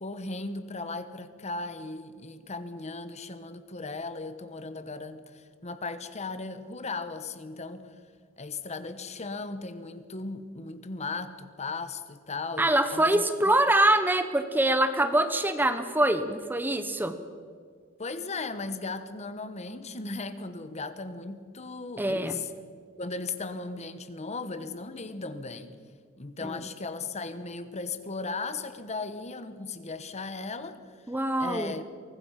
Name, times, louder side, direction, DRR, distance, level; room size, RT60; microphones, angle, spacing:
voice 1, 0.0-7.9 8.4-13.2 18.0-22.5 23.0-25.8 26.2-30.8 31.4-31.9, left 3 dB, 30° left, 11 dB, 1.1 m, -37 dB
voice 2, 12.6-17.1 22.0-22.4 26.4-26.6 31.1-31.7, right 1 dB, 10° right, 9 dB, 0.8 m, -24 dB
24.0 x 19.5 x 5.8 m, 2.1 s
head